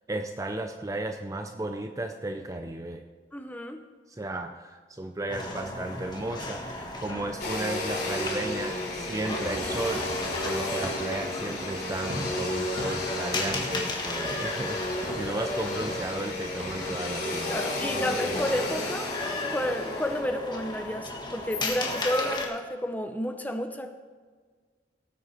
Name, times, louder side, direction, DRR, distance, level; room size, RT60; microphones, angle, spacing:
voice 1, 0.1-3.0 4.1-17.6, right 2 dB, 20° right, 6 dB, 0.5 m, -34 dB
voice 2, 3.3-3.8 17.3-23.9, equal, 10° left, 6 dB, 0.8 m, -31 dB
sound 1, 5.3-22.5, left 2 dB, 25° left, 1.4 m, -35 dB
Domestic sounds home sounds, 7.4-20.2, left 2 dB, 60° left, 3.3 m, -33 dB
sound 2, 11.4-17.0, equal, 40° right, 2.9 m, -40 dB
18.0 x 7.7 x 4.4 m, 1.5 s
head